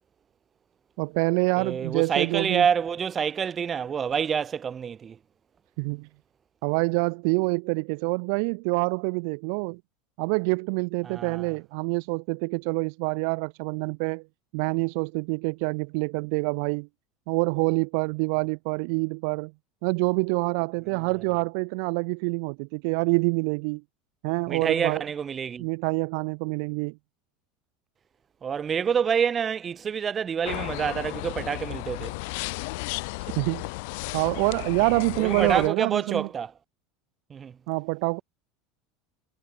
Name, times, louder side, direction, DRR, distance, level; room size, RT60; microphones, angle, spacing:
voice 1, 1.0-2.6 5.8-6.1 6.6-9.8 10.2-14.2 14.5-16.9 17.3-19.5 19.8-23.8 24.2-25.0 25.6-27.0 33.2-33.7 34.1-36.3 37.7-38.2, right 37 dB, 60° right, 1.0 m, -26 dB
voice 2, 1.6-5.2 11.0-11.5 24.5-25.7 28.4-32.2 35.2-36.5 37.3-37.6, right 7 dB, 20° right, 6.8 m, -27 dB
sound 1, 30.4-35.7, left 28 dB, 65° left, 1.7 m, -34 dB
supercardioid pair, 160°, 0 cm